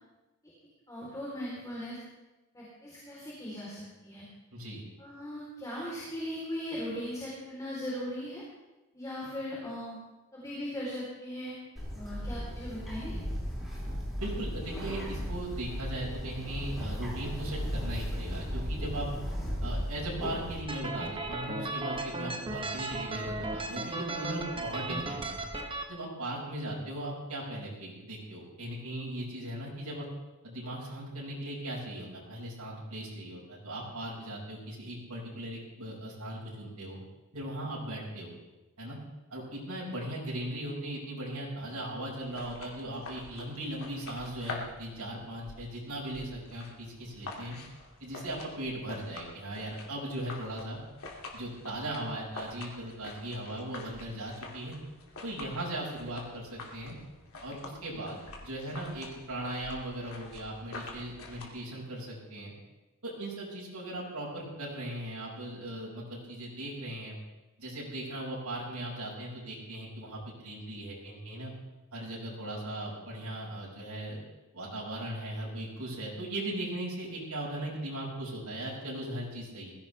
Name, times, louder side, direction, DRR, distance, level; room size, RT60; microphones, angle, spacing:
voice 1, 0.9-2.0 2.5-4.3 5.0-8.4 8.9-10.0 10.3-11.5 11.9-13.2, equal, 15° left, -6 dB, 3.9 m, -38 dB
voice 2, 4.5-4.8 14.2-19.1 19.6-25.4 25.9-30.1 30.4-37.0 37.3-38.3 38.8-39.0 39.3-47.6 48.0-50.8 51.3-54.7 55.2-56.9 57.4-62.5 63.0-67.2 67.6-71.5 71.9-74.2 74.5-79.7, right 1 dB, 80° right, -6 dB, 6.0 m, -38 dB
Bird, 11.8-20.6, equal, ahead, 5.5 m, -35 dB
sound 1, 20.7-25.8, right 2 dB, 25° right, 1.3 m, -36 dB
sound 2, 42.1-61.5, left 2 dB, 70° left, 2.7 m, -47 dB
21.0 x 16.0 x 3.5 m, 1.1 s
head